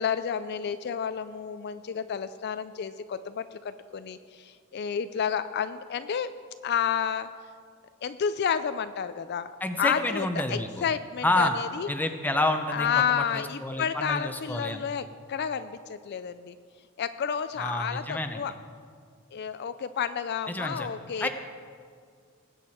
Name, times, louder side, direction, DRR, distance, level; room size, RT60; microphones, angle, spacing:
voice 1, 0.0-6.3 6.6-7.3 8.0-9.5 9.8-11.9 12.7-16.6 17.0-18.5 19.3-21.3, left 7 dB, 50° left, 12 dB, 0.4 m, -30 dB
voice 2, 9.6-10.7 11.2-11.5 11.9-14.8 17.6-18.4 20.5-20.9 21.2-21.3, left 1 dB, 10° left, 5 dB, 0.7 m, -28 dB
20.0 x 8.2 x 4.4 m, 2.1 s
head